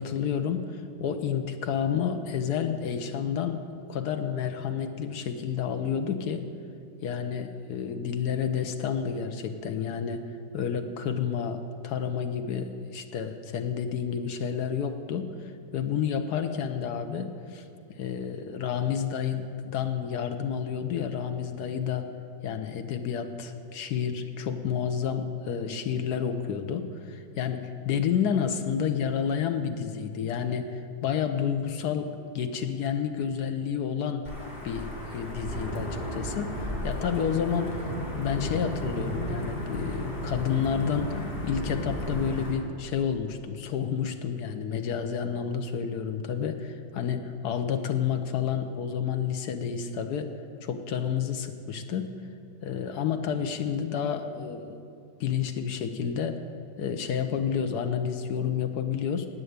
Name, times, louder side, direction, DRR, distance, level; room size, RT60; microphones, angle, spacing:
voice 1, 0.0-3.6 3.9-6.5 7.0-10.2 10.5-22.1 22.4-34.3 34.6-37.8 38.2-50.3 50.6-52.1 52.6-54.8 55.2-56.4 56.8-59.3, left 7 dB, 65° left, 7 dB, 1.1 m, -30 dB
Wind / Thunder / Rain, 34.2-42.5, equal, 30° left, 2.7 m, -33 dB
10.0 x 7.6 x 9.4 m, 2.5 s
omnidirectional pair, 2.0 m